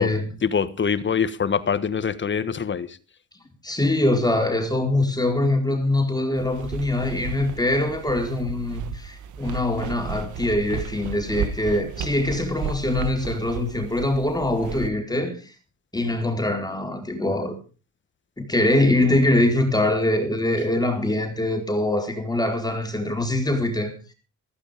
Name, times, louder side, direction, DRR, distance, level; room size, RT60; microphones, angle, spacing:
voice 1, 0.4-3.0, left 6 dB, 40° left, 1.5 m, -24 dB
voice 2, 3.6-15.3 15.9-17.6 18.4-23.9, left 1 dB, 15° left, 4.4 m, -23 dB
sound 1, 6.4-14.9, right 6 dB, 80° right, 1.9 m, -34 dB
15.5 x 14.5 x 5.2 m
cardioid pair, 90°, 30 cm